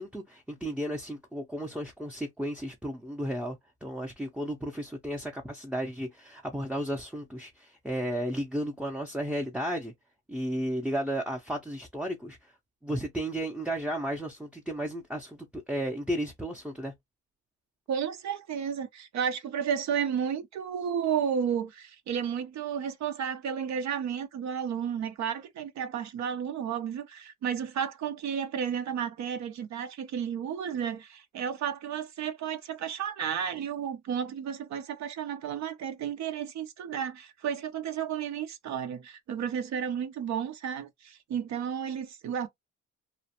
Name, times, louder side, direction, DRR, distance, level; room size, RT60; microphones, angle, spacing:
voice 1, 0.0-3.6 3.8-9.9 10.3-12.4 12.8-16.9, equal, 5° right, 0.5 m, -33 dB
voice 2, 17.9-42.5, right 8 dB, 65° right, 0.5 m, -32 dB
2.4 x 2.1 x 2.8 m
cardioid pair, 90°, 30 cm